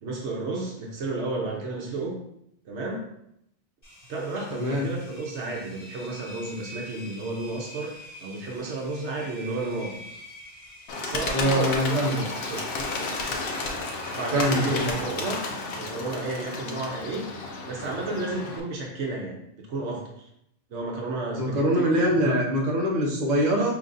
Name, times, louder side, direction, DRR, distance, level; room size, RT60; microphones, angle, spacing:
voice 1, 0.0-2.2 2.6-3.0 4.1-7.9 8.2-10.0 11.0-12.8 14.1-15.4 15.8-17.3 17.7-20.2 20.7-22.4, right 2 dB, 70° right, -1 dB, 1.1 m, -32 dB
Engine, 3.8-14.7, equal, 25° left, 1.4 m, -46 dB
voice 2, 4.5-4.9 11.3-12.2 14.3-14.9 21.4-23.7, equal, 40° right, -2 dB, 0.9 m, -23 dB
Bird, 10.9-18.6, left 3 dB, 60° left, 0.8 m, -32 dB
5.2 x 3.0 x 2.5 m, 0.75 s
omnidirectional pair, 1.2 m